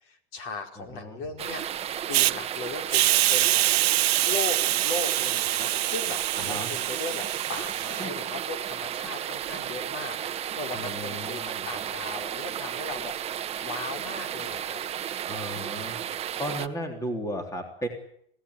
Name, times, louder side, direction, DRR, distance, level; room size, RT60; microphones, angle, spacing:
voice 1, 0.0-1.6 2.1-14.8, left 3 dB, 40° left, 5 dB, 4.7 m, -38 dB
voice 2, 0.8-1.2 6.4-6.7 8.0-8.2 10.7-11.7 15.3-16.0 16.4-17.9, equal, 10° left, 4 dB, 3.5 m, -35 dB
sound 1, 1.4-16.7, right 10 dB, 20° right, 1.0 m, -34 dB
Hiss, 2.1-2.3 2.9-8.0, right 15 dB, 70° right, 1.0 m, -25 dB
26.5 x 17.0 x 10.0 m, 0.72 s
supercardioid pair, 145°, 32 cm